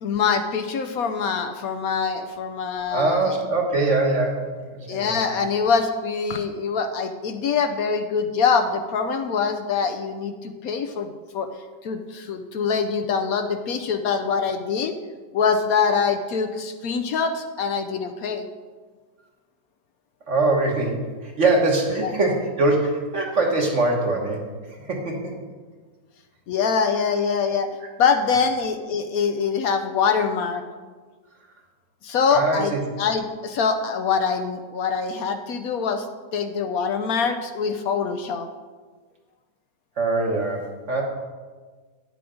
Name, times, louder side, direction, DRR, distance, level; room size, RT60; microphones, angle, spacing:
voice 1, 0.0-3.3 4.9-11.5 11.8-14.9 15.3-18.5 22.0-22.1 26.5-27.7 28.0-30.6 32.0-32.7 33.0-36.1 36.3-38.5, left 5 dB, 70° left, 7 dB, 1.0 m, -24 dB
voice 2, 2.9-5.2 20.3-24.5 24.8-25.3 32.3-32.8 40.0-41.0, right 2 dB, 50° right, 0 dB, 1.6 m, -23 dB
10.0 x 6.9 x 5.0 m, 1.4 s
omnidirectional pair, 1.7 m